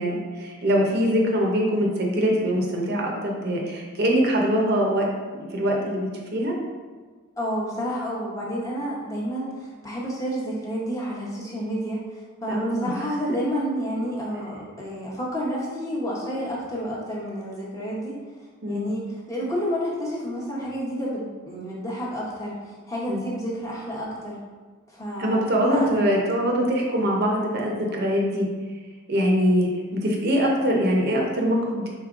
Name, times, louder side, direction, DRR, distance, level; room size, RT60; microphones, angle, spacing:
voice 1, 0.0-6.5 12.5-12.9 18.6-18.9 23.1-23.2 25.2-28.5 29.1-31.9, equal, 50° right, -1 dB, 0.6 m, -23 dB
voice 2, 7.4-18.1 18.7-24.4 24.9-26.2, equal, 15° left, -5 dB, 0.8 m, -30 dB
4.9 x 3.8 x 2.4 m, 1.4 s
head